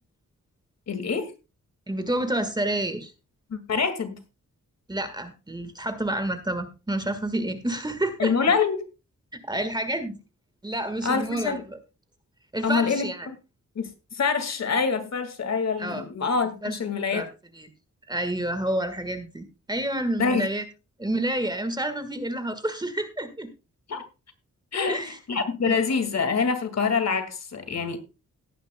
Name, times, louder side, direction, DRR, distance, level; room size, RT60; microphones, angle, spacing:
voice 1, 0.9-1.3 3.5-4.2 8.2-8.8 11.0-11.6 12.6-13.3 13.8-17.2 20.2-20.5 23.9-24.0 24.7-28.0, left 5 dB, 55° left, 9 dB, 2.1 m, -26 dB
voice 2, 1.9-3.1 4.9-8.3 9.4-10.2 10.6-11.8 12.5-13.3 15.8-16.0 16.6-16.8 17.1-17.3 17.5-17.7 18.1-20.6 21.0-23.5 24.7-25.2 25.6-25.8, right 1 dB, 15° right, 9 dB, 1.6 m, -29 dB
18.0 x 9.6 x 2.2 m, 0.29 s
wide cardioid pair, 150°, 31 cm